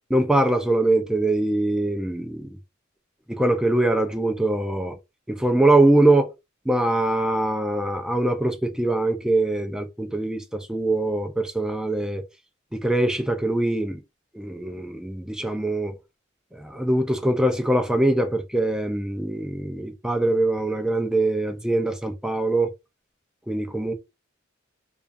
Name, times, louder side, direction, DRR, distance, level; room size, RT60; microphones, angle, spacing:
voice 1, 0.1-2.5 3.3-5.0 5.3-6.3 6.7-12.2 12.7-14.0 14.3-15.9 16.5-22.7 23.5-23.9, right 2 dB, 5° right, 0.3 m, -23 dB
2.4 x 2.3 x 2.5 m
head